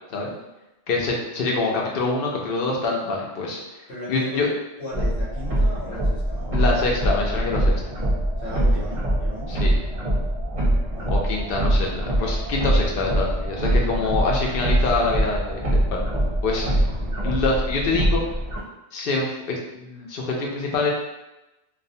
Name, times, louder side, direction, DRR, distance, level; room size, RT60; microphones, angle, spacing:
voice 1, 0.9-3.6 4.1-4.5 6.5-7.7 9.5-9.7 11.1-15.6 15.9-16.1 16.4-16.7 17.2-18.3 18.9-20.9, left 3 dB, 65° left, -1 dB, 0.7 m, -25 dB
voice 2, 3.9-4.5 4.8-6.7 8.0-8.1 8.4-9.6 10.9-11.2, left 1 dB, 85° left, -6 dB, 1.0 m, -36 dB
sound 1, 4.9-18.6, right 1 dB, 40° right, 0.6 m, -23 dB
2.3 x 2.1 x 2.6 m, 0.97 s
omnidirectional pair, 1.1 m